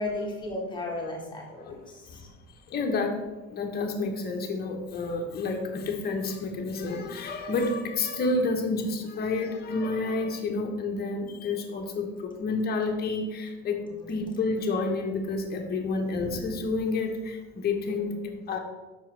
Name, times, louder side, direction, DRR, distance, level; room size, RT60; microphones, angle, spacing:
voice 1, 0.0-2.3 13.8-14.3 17.9-18.3, left 2 dB, 15° left, -1 dB, 1.2 m, -36 dB
voice 2, 2.7-13.8 14.1-18.1 18.5-18.6, left 3 dB, 35° left, 3 dB, 0.9 m, -29 dB
5.7 x 4.6 x 4.6 m, 1.2 s
cardioid pair, 150°, 29 cm